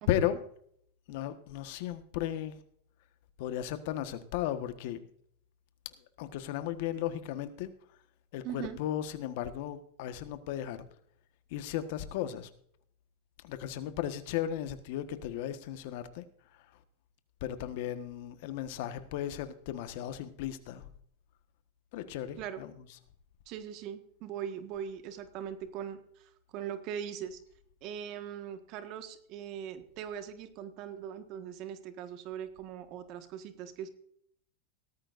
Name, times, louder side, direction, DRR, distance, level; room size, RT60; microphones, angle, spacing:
voice 1, 0.0-0.4 8.4-8.8 22.4-22.6 23.5-27.4 27.8-33.9, right 9 dB, 50° right, 9 dB, 1.6 m, -41 dB
voice 2, 1.1-2.5 3.4-5.0 6.2-7.7 8.3-10.8 11.5-12.5 13.5-16.2 17.4-20.8 21.9-22.4, left 11 dB, 65° left, 10 dB, 1.4 m, -35 dB
17.5 x 14.0 x 2.6 m, 0.65 s
hypercardioid pair, 110°, 0 cm